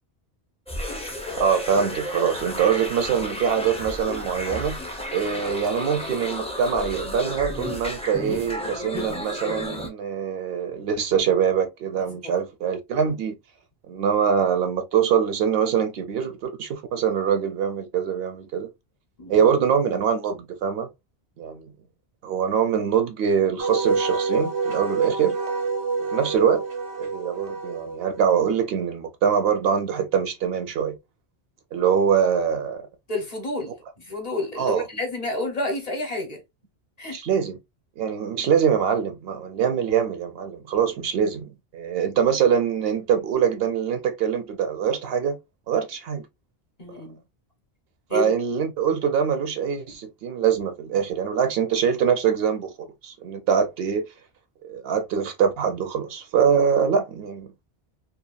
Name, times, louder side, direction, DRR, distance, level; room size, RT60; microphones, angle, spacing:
sound 1, 0.7-9.9, left 1 dB, 10° left, 0.4 m, -32 dB
voice 1, 1.4-4.8 5.1-13.3 13.9-18.7 19.3-20.9 21.4-21.7 22.2-25.4 26.0-26.6 27.0-31.0 31.7-32.9 34.6-34.8 37.1-37.6 38.0-45.4 45.7-46.2 48.1-52.7 53.0-54.1 54.6-57.5, right 7 dB, 70° right, 0.7 m, -23 dB
Wind instrument woodwind instrument, 23.6-28.4, right 4 dB, 90° right, 1.1 m, -27 dB
voice 2, 33.1-36.4 37.0-37.2 46.8-47.2 48.1-48.3, left 2 dB, 40° left, 0.8 m, -30 dB
2.8 x 2.3 x 2.3 m
omnidirectional pair, 1.1 m